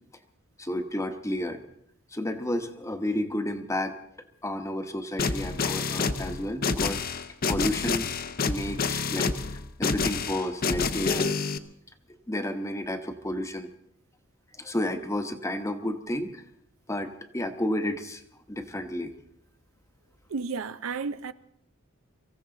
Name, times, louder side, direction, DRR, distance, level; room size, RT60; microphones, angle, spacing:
voice 1, 0.6-1.6 2.1-4.0 4.4-7.0 7.5-8.1 8.5-9.3 9.8-11.3 12.3-13.7 14.5-16.4 16.9-18.2 18.5-19.1, left 1 dB, 15° left, 1.0 m, -31 dB
sound 1, 5.2-11.6, left 4 dB, 45° left, 0.8 m, -28 dB
voice 2, 20.3-21.3, right 4 dB, 70° right, 0.6 m, -32 dB
24.5 x 15.0 x 3.8 m
head